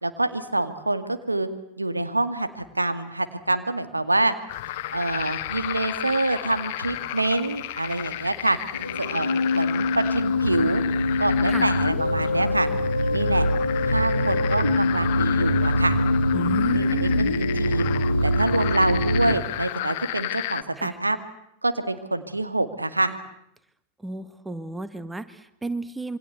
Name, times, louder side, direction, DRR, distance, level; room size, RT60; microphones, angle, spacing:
voice 1, 0.0-1.5 1.8-4.3 4.9-8.6 9.0-10.8 11.2-12.7 13.1-13.5 13.9-16.0 16.7-17.1 17.4-17.9 18.2-21.2 21.6-23.1, right 2 dB, 85° right, 10 dB, 2.1 m, -26 dB
sound 1, 4.5-20.6, left 14 dB, 50° left, 1.4 m, -33 dB
sound 2, 8.7-19.4, left 2 dB, 80° left, 1.8 m, -23 dB
voice 2, 16.3-17.5 20.8-21.0 24.0-26.2, right 2 dB, 10° right, 13 dB, 1.8 m, -33 dB
27.5 x 24.5 x 8.2 m, 0.77 s
figure-of-eight pair, 90°, 0 cm